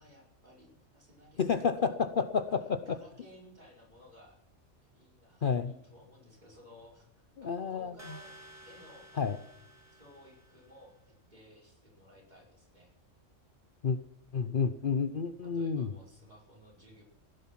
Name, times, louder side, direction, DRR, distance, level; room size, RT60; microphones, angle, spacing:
voice 1, 0.0-2.0 2.5-4.4 4.9-8.3 8.7-9.1 9.9-12.9 15.4-17.0, left 1 dB, 35° right, -1 dB, 5.1 m, -57 dB
voice 2, 1.4-3.0 5.4-5.7 7.4-8.2 9.2-9.4 13.8-14.0 14.3-15.9, left 6 dB, 50° left, 10 dB, 0.8 m, -30 dB
sound 1, 8.0-10.9, right 1 dB, 10° right, 2.1 m, -54 dB
16.0 x 11.0 x 5.8 m, 0.76 s
omnidirectional pair, 1.3 m